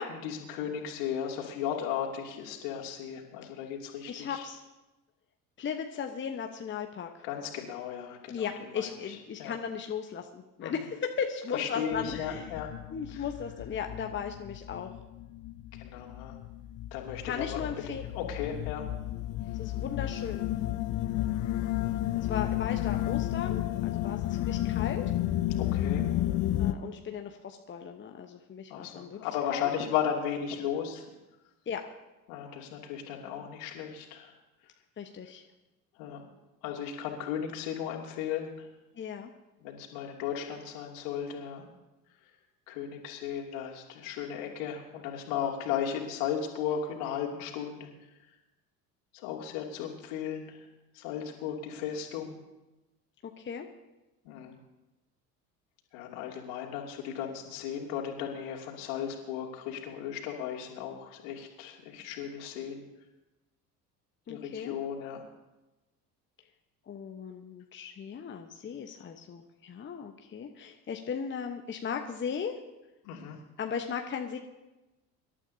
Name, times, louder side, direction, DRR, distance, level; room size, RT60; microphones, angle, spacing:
voice 1, 0.1-4.4 7.2-8.5 8.8-9.5 10.6-10.7 11.5-12.7 13.1-13.2 15.7-16.4 16.9-17.7 18.1-18.9 22.1-22.4 25.6-26.1 28.7-31.0 32.3-34.3 36.0-36.2 36.6-38.7 39.6-41.6 42.7-47.9 49.1-50.6 50.9-52.3 54.2-54.6 55.9-62.8 64.3-65.2 73.0-73.4, left 8 dB, 60° left, 0 dB, 2.8 m, -35 dB
voice 2, 4.1-4.6 5.6-7.1 8.3-12.5 12.9-14.9 17.2-18.0 19.6-20.5 22.3-25.1 26.6-29.2 29.5-29.7 31.7-31.8 35.0-35.4 38.9-39.3 53.4-53.7 64.3-64.8 66.9-72.6 73.6-74.4, left 7 dB, 25° left, 4 dB, 1.1 m, -37 dB
sound 1, 11.9-26.7, left 13 dB, 40° left, 0.7 m, -32 dB
25.5 x 12.0 x 2.8 m, 1.0 s
figure-of-eight pair, 65°, 47 cm